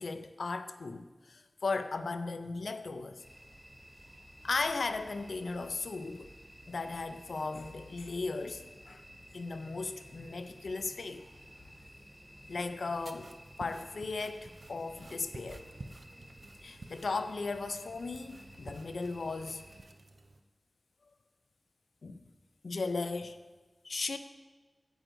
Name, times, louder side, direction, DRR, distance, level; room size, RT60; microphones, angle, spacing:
voice 1, 0.0-3.2 4.4-6.3 6.7-9.0 9.3-11.2 12.5-13.3 13.6-15.7 16.6-19.6 22.0-22.2 22.6-23.4 23.8-24.2, left 3 dB, 85° left, 10 dB, 0.4 m, -36 dB
sound 1, 3.2-19.8, equal, 10° right, 2.6 m, -54 dB
sound 2, 13.0-20.4, right 2 dB, 65° right, 0.4 m, -51 dB
8.9 x 7.7 x 2.6 m, 1.2 s
cardioid pair, 40°, 0 cm